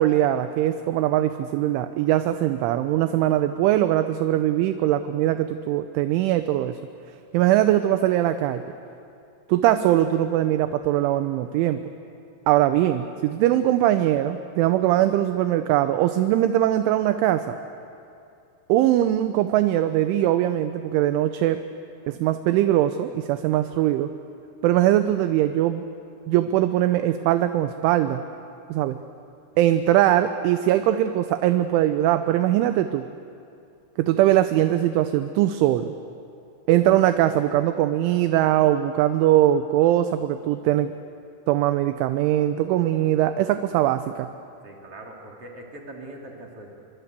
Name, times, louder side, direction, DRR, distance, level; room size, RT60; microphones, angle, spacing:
voice 1, 0.0-6.8 7.3-8.6 9.5-11.8 12.5-17.6 18.7-21.6 22.1-24.1 24.6-25.8 26.3-28.2 28.7-29.0 29.6-33.0 34.0-35.9 36.7-40.9 41.5-44.3, right 13 dB, 80° right, 9 dB, 3.0 m, -21 dB
voice 2, 44.6-46.7, right 1 dB, 35° right, 0 dB, 3.2 m, -41 dB
28.0 x 24.0 x 8.2 m, 2.6 s
omnidirectional pair, 5.8 m